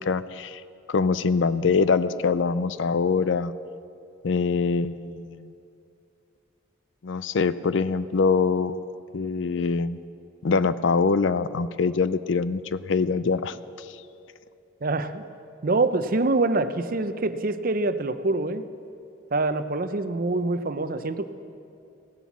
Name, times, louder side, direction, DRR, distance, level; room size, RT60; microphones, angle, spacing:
voice 1, 0.1-0.6 0.9-3.5 4.2-5.5 7.0-8.8 9.1-10.0 10.4-13.6, left 4 dB, 70° left, 15 dB, 0.5 m, -24 dB
voice 2, 14.8-15.3 15.6-18.6 19.3-21.3, right 2 dB, 45° right, 11 dB, 0.6 m, -25 dB
16.5 x 11.0 x 7.3 m, 2.6 s
head